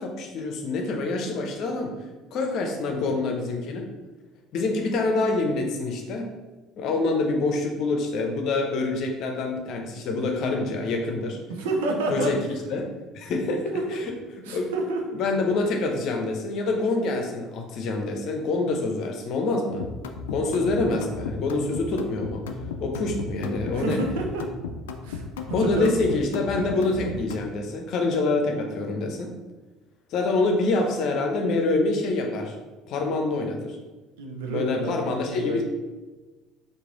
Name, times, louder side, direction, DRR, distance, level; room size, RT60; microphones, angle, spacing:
voice 1, 0.0-1.9 2.3-3.9 4.5-6.3 6.8-11.4 12.1-12.4 12.7-12.9 13.1-14.1 14.5-14.7 15.1-19.8 20.3-22.4 22.8-24.0 25.5-29.3 30.1-32.5 32.9-33.8 34.5-35.6, left 3 dB, 55° left, 3 dB, 0.7 m, -26 dB
voice 2, 11.5-12.3 13.7-14.0 14.4-15.0 23.7-24.4 25.0-26.0 34.2-35.6, right 2 dB, 70° right, 1 dB, 0.7 m, -29 dB
sound 1, 19.8-27.5, left 4 dB, 75° left, 0.3 m, -34 dB
4.8 x 2.7 x 3.7 m, 1.2 s
figure-of-eight pair, 60°, 0 cm